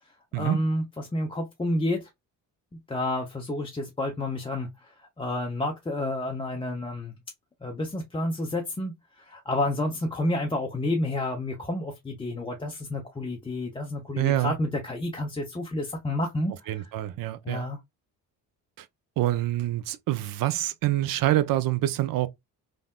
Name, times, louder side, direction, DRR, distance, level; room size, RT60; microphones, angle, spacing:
voice 1, 0.3-2.1 2.7-4.7 5.2-7.1 7.6-8.9 9.3-16.9 17.4-17.8, left 1 dB, 10° left, 0.5 m, -30 dB
voice 2, 14.2-14.5 16.7-17.6 19.2-22.3, right 14 dB, 45° right, 0.5 m, -26 dB
3.4 x 2.0 x 2.2 m
hypercardioid pair, 40°, 48 cm